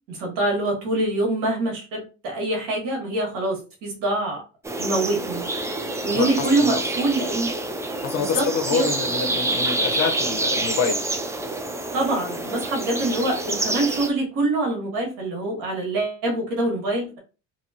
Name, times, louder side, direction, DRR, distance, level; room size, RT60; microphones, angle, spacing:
voice 1, 0.1-4.4 4.8-5.5 6.0-7.5 8.2-8.9 11.9-17.2, right 2 dB, 75° right, 1.6 m, -25 dB
sound 1, 4.6-14.1, right 2 dB, 10° right, 0.3 m, -27 dB
voice 2, 6.1-6.8 8.0-11.1, left 5 dB, 55° left, 0.8 m, -26 dB
2.9 x 2.8 x 2.8 m
supercardioid pair, 105°, 34 cm